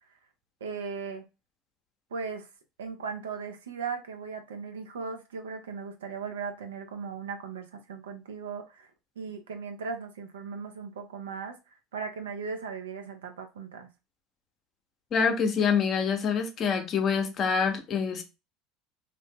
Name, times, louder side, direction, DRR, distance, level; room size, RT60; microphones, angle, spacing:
voice 1, 0.6-1.2 2.1-2.5 2.8-8.9 9.2-11.6 11.9-13.9, right 5 dB, 85° right, 0.4 m, -37 dB
voice 2, 15.1-18.2, left 6 dB, 45° left, 0.6 m, -26 dB
2.6 x 2.0 x 3.4 m
hypercardioid pair, 75°, 0 cm